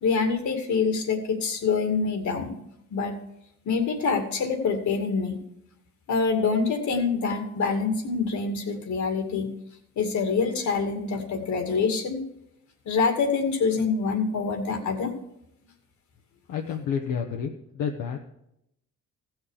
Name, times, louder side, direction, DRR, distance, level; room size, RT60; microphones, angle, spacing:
voice 1, 0.0-2.6 2.9-3.2 3.7-5.3 6.1-9.5 10.0-12.2 12.9-15.1, left 5 dB, 70° left, 5 dB, 2.3 m, -25 dB
voice 2, 16.5-18.2, left 7 dB, 85° left, 2 dB, 1.1 m, -30 dB
15.5 x 6.5 x 4.9 m, 0.80 s
cardioid pair, 90°, 30 cm